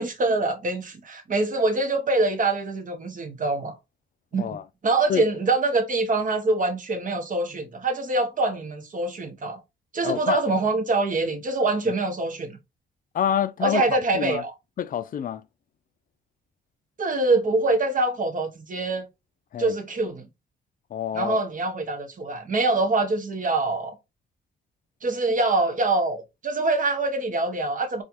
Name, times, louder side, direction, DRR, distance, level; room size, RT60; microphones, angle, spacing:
voice 1, 0.0-3.7 4.3-4.6 4.8-9.6 9.9-12.6 13.6-14.5 17.0-19.1 19.6-20.3 21.1-24.0 25.0-28.0, right 2 dB, 40° right, 1.2 m, -24 dB
voice 2, 10.0-10.4 13.1-14.4 14.8-15.4 19.5-19.7 20.9-21.4, left 9 dB, 45° left, 0.4 m, -27 dB
4.3 x 2.5 x 2.8 m
cardioid pair, 90°, 20 cm